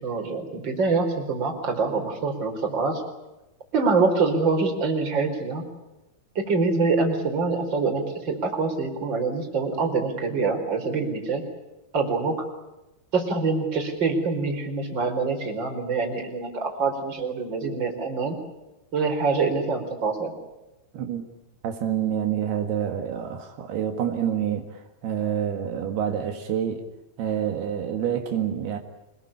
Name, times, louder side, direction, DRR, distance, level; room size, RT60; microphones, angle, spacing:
voice 1, 0.0-3.0 3.7-5.6 6.3-11.4 11.9-12.4 13.1-18.4 18.9-20.3, right 4 dB, 25° right, 4 dB, 4.9 m, -25 dB
voice 2, 21.6-26.8 27.2-28.8, right 9 dB, 75° right, 5 dB, 3.7 m, -27 dB
26.5 x 21.5 x 8.6 m, 0.98 s
omnidirectional pair, 4.7 m